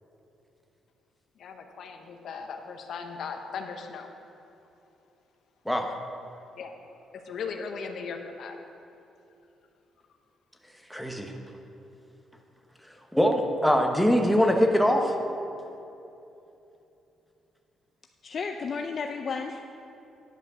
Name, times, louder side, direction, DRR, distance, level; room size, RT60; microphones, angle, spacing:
voice 1, 1.4-4.1 6.6-6.7 7.1-8.6, left 5 dB, 65° left, 5 dB, 0.9 m, -38 dB
voice 2, 10.9-11.3 13.1-15.2, equal, ahead, 3 dB, 1.0 m, -22 dB
voice 3, 18.2-19.6, left 5 dB, 50° left, 4 dB, 0.5 m, -32 dB
11.0 x 5.0 x 6.6 m, 2.9 s
cardioid pair, 90°, 0 cm